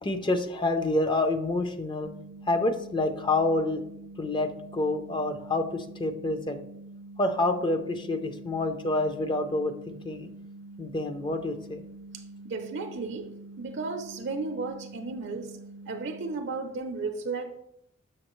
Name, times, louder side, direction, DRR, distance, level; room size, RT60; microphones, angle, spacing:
voice 1, 0.0-2.1 2.5-3.8 4.2-6.6 7.2-10.3 10.8-11.8, left 2 dB, 25° left, 0.5 m, -28 dB
sound 1, 2.0-16.3, right 2 dB, 80° left, 2.0 m, -46 dB
voice 2, 12.1-15.6 15.9-17.6, right 4 dB, 60° right, 0.6 m, -34 dB
6.8 x 6.4 x 3.0 m
head